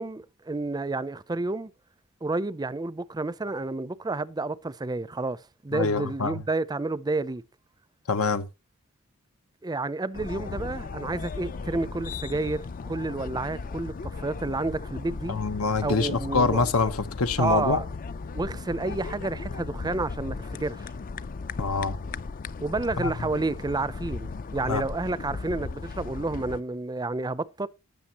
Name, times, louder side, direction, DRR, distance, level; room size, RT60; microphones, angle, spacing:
voice 1, 0.0-1.7 2.2-7.4 9.6-15.4 15.8-16.6 17.4-17.9 18.3-20.9 22.6-27.7, right 3 dB, 20° right, 0.5 m, -30 dB
voice 2, 5.7-6.4 8.1-8.5 15.3-17.8 21.6-22.0 23.0-23.1 24.6-24.8, left 4 dB, 85° left, 1.0 m, -25 dB
sound 1, 10.1-26.6, left 4 dB, 40° left, 0.4 m, -36 dB
18.5 x 6.5 x 2.9 m
head